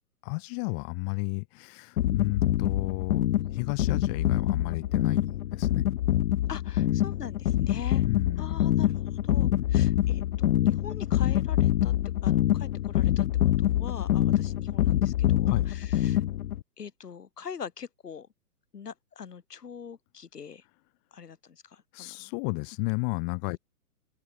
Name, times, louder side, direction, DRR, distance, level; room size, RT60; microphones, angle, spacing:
voice 1, 0.2-5.8 6.8-7.2 8.1-8.7 15.5-15.7 21.9-23.6, left 40 dB or more, 20° left, 0.9 m, -33 dB
sound 1, 2.0-16.6, left 12 dB, 65° left, 0.7 m, -25 dB
voice 2, 6.5-8.1 8.4-8.9 9.2-11.9 12.2-16.2 16.8-18.3 18.7-20.6 21.1-22.3, left 7 dB, 80° left, 5.7 m, -43 dB
open air
hypercardioid pair, 145°, 46 cm